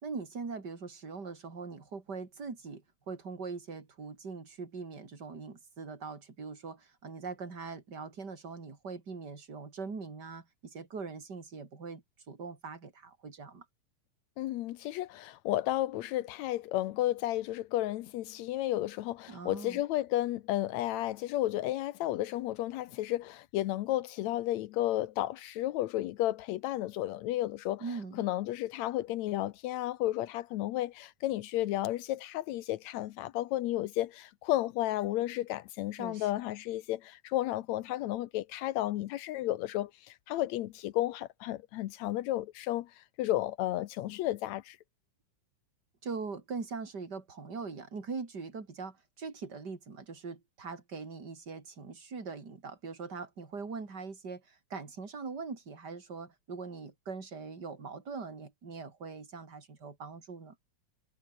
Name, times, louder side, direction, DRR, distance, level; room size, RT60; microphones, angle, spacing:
voice 1, 0.0-13.7 19.3-19.8 27.8-28.3 36.0-36.3 46.0-60.6, right 4 dB, 30° right, 3.9 m, -42 dB
voice 2, 14.4-27.8 28.1-44.8, left 15 dB, 75° left, 1.7 m, -32 dB
omnidirectional pair, 4.0 m